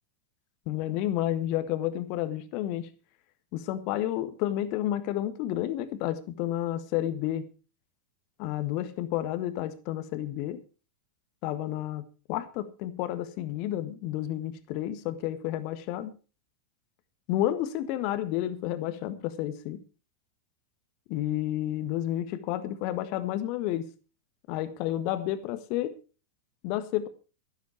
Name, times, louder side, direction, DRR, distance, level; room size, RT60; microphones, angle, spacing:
voice 1, 0.7-2.9 3.5-7.5 8.4-10.6 11.4-12.0 12.3-16.1 17.3-19.8 21.1-23.9 24.5-26.0 26.6-27.1, left 13 dB, 45° left, 1.5 m, -31 dB
13.5 x 12.5 x 4.6 m
figure-of-eight pair, 90°, 0 cm